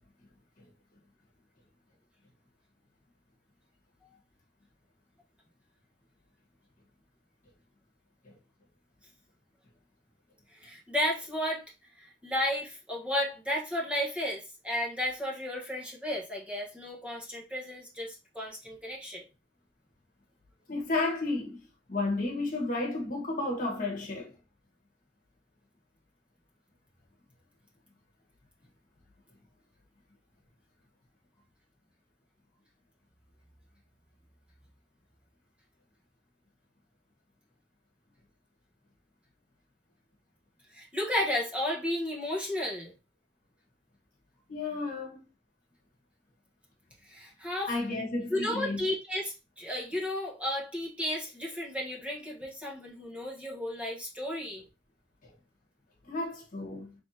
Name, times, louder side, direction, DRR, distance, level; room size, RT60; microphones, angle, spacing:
voice 1, 10.6-11.6 12.0-19.2 40.7-42.9 47.1-47.7 48.3-54.6, left 1 dB, 5° right, 1.1 m, -33 dB
voice 2, 20.7-21.6 21.9-24.3 44.5-45.2 47.7-48.8 56.1-56.9, left 2 dB, 45° left, 1.3 m, -32 dB
3.5 x 3.3 x 2.8 m
head